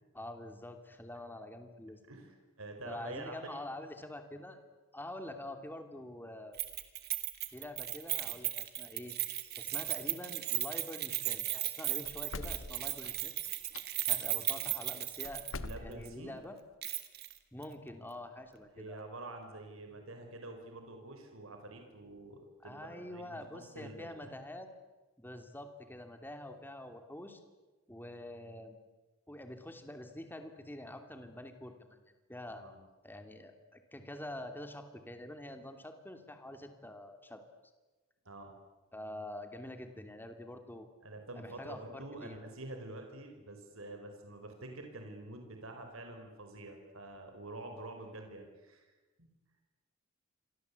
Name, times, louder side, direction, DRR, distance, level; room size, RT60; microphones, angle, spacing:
voice 1, 0.1-2.0 2.9-4.6 4.9-6.6 7.5-9.2 9.6-13.4 14.0-15.4 15.8-16.6 17.5-19.0 22.6-24.7 25.2-27.4 27.9-28.8 29.3-32.0 32.3-32.6 33.0-37.4 38.9-40.9 41.4-42.4, left 1 dB, 10° left, 7 dB, 2.8 m, -46 dB
voice 2, 2.1-3.6 15.6-16.4 18.7-23.4 23.7-24.3 32.5-32.8 38.2-38.5 41.0-48.8 49.2-49.3, right 2 dB, 80° right, 4 dB, 4.7 m, -47 dB
Keys jangling, 6.6-15.7 16.0-16.1 16.8-17.3 17.6-17.7, right 15 dB, 50° right, 2.2 m, -36 dB
sound 1, 12.0-13.8 15.2-16.3, left 2 dB, 75° left, 1.3 m, -44 dB
28.5 x 24.0 x 8.4 m, 1.2 s
head